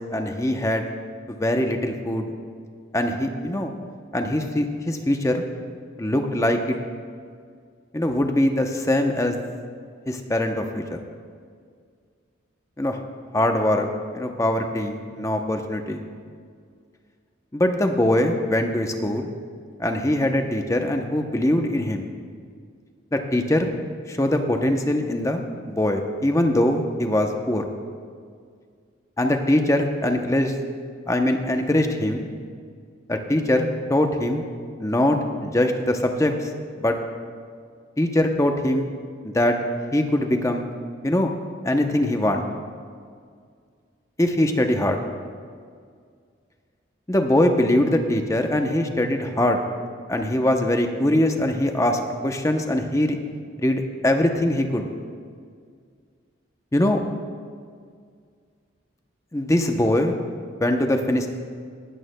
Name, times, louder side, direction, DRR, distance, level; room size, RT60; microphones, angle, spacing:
voice 1, 0.1-0.9 1.4-2.3 2.9-3.7 4.1-5.4 6.0-6.8 7.9-9.4 10.1-11.0 12.8-13.0 13.3-13.9 14.1-16.0 17.5-19.3 19.8-22.1 23.1-23.7 24.1-25.4 25.7-27.7 29.2-30.5 31.1-32.3 33.1-34.4 34.8-36.5 36.8-37.0 38.0-38.9 39.2-39.6 39.9-40.7 41.0-41.3 41.6-42.5 44.2-45.0 47.1-49.6 50.1-53.2 53.6-54.9 56.7-57.0 59.3-60.1 60.6-61.3, left 1 dB, 15° left, 4 dB, 0.7 m, -22 dB
18.5 x 13.0 x 2.2 m, 2.1 s
head